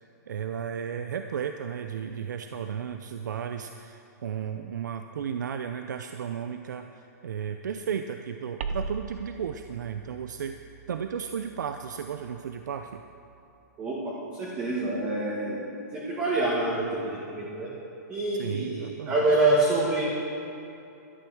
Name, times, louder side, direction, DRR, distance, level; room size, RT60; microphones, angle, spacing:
voice 1, 0.0-10.6 10.9-13.0 18.4-19.2, right 7 dB, 90° right, 7 dB, 0.6 m, -34 dB
sound 1, 8.6-13.4, right 4 dB, 50° right, 0.8 m, -41 dB
voice 2, 13.8-15.6 15.9-17.7 18.1-20.0, right 2 dB, 15° right, -5 dB, 1.6 m, -26 dB
12.5 x 10.5 x 6.4 m, 2.8 s
hypercardioid pair, 165°, 9 cm